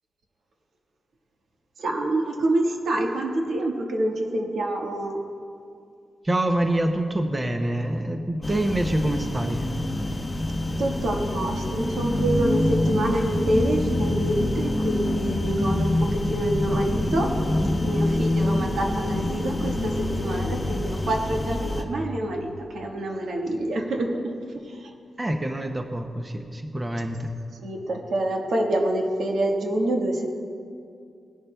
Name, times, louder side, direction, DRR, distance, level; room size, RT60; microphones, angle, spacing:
voice 1, 1.8-5.2 10.8-17.3 17.8-24.1 24.8-24.9 27.6-30.3, right 1 dB, 75° right, 0 dB, 1.4 m, -26 dB
voice 2, 6.2-9.7 16.7-16.9 25.2-27.3, right 1 dB, 15° right, 5 dB, 0.6 m, -26 dB
sound 1, 8.4-21.8, left 1 dB, 15° left, 0.8 m, -26 dB
18.5 x 11.0 x 2.2 m, 2.4 s
wide cardioid pair, 150°, 0 cm